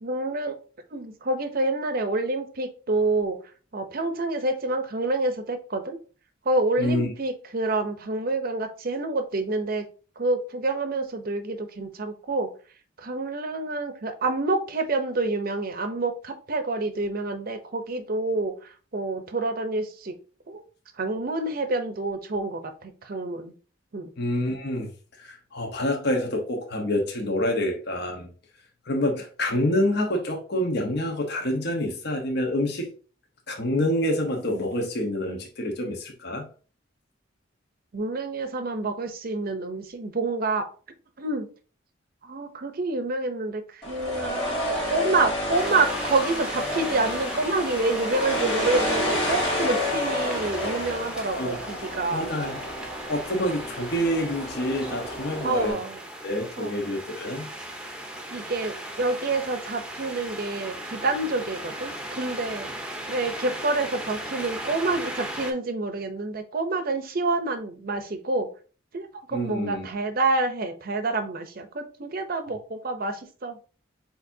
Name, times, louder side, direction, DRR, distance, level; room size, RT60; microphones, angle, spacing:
voice 1, 0.0-0.5 0.9-3.4 3.7-6.0 6.5-9.8 10.2-12.5 13.0-20.1 20.5-20.6 21.0-23.5 23.9-24.1 37.9-40.7 41.2-41.5 42.2-52.2 55.4-56.0 56.6-56.8 58.3-62.7 63.1-68.5 68.9-73.6, right 2 dB, 50° right, 8 dB, 0.6 m, -28 dB
voice 2, 6.8-7.1 24.2-24.9 25.2-28.3 28.8-32.9 33.5-36.4 51.3-51.6 52.1-52.6 53.1-55.8 56.2-57.5 69.3-69.9 72.4-72.5, left 1 dB, 60° left, 2 dB, 1.0 m, -27 dB
sound 1, 43.8-55.7, left 1 dB, 30° left, 2.2 m, -30 dB
sound 2, 45.5-65.5, right 1 dB, 5° right, 0.7 m, -38 dB
6.6 x 2.8 x 2.7 m, 0.38 s
head